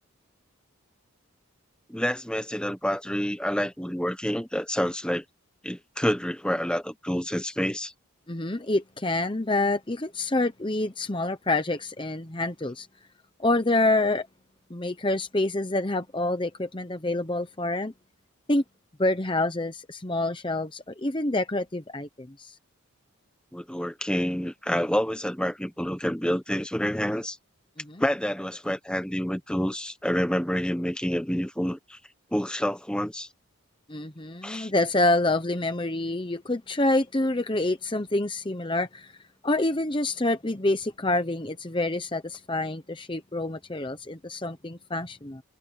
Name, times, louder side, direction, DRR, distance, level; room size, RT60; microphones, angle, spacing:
voice 1, 1.9-5.2 5.6-7.9 23.5-27.4 28.0-32.0 32.3-33.3 34.4-34.7, equal, 5° left, 1.2 m, -28 dB
voice 2, 8.3-12.9 13.4-14.3 14.7-17.9 18.5-18.6 19.0-22.6 27.8-28.0 33.9-39.1 39.4-45.4, left 2 dB, 20° left, 0.9 m, -27 dB
head